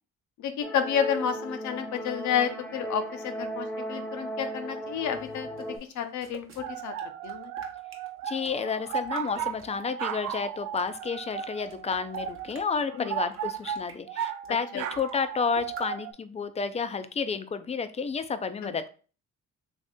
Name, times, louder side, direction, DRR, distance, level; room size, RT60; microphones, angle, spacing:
voice 1, 0.4-6.9 7.2-7.5 12.9-13.1 14.5-14.8 18.6-18.8, left 8 dB, 70° left, 8 dB, 0.6 m, -31 dB
sound 1, 0.6-5.8, right 1 dB, ahead, 0.7 m, -36 dB
sound 2, 5.1-9.8 10.2-12.8 13.2-14.0 14.4-14.5 14.8-15.3 15.6-15.9, right 4 dB, 45° right, 0.8 m, -49 dB
sound 3, 6.6-16.1, right 9 dB, 70° right, 0.5 m, -35 dB
voice 2, 8.2-18.9, left 5 dB, 20° left, 11 dB, 0.3 m, -31 dB
3.2 x 2.6 x 3.6 m, 0.37 s
cardioid pair, 90°, 30 cm